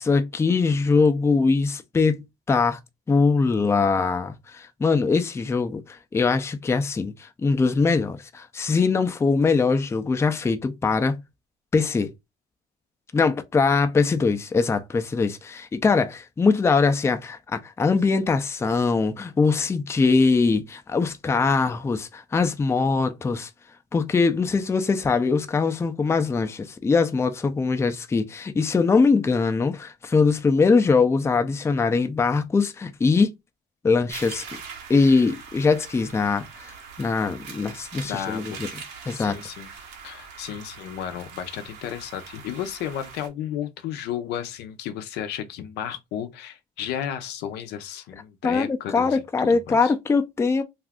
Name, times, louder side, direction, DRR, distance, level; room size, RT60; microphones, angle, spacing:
voice 1, 0.0-2.2 2.5-2.8 3.1-11.2 11.7-12.1 13.1-23.5 23.9-33.3 33.8-34.4 34.9-38.7 39.1-39.4 48.4-50.6, left 4 dB, 15° left, 0.4 m, -22 dB
sound 1, 34.1-43.3, right 6 dB, 80° right, 0.9 m, -42 dB
voice 2, 38.0-38.6 39.2-39.7 40.0-49.2 49.5-49.9, left 10 dB, 80° left, 0.5 m, -33 dB
2.4 x 2.3 x 3.5 m
cardioid pair, 110°, 17 cm